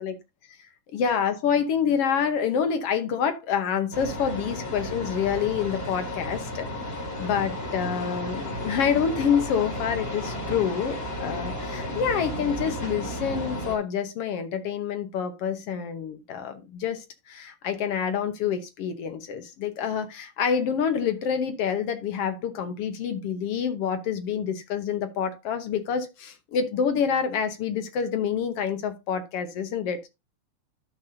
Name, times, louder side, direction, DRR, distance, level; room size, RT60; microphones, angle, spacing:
voice 1, 0.9-30.1, left 7 dB, 65° left, 1.6 m, -27 dB
sound 1, 3.9-13.8, left 1 dB, 20° left, 2.0 m, -33 dB
12.5 x 6.1 x 2.6 m
omnidirectional pair, 3.4 m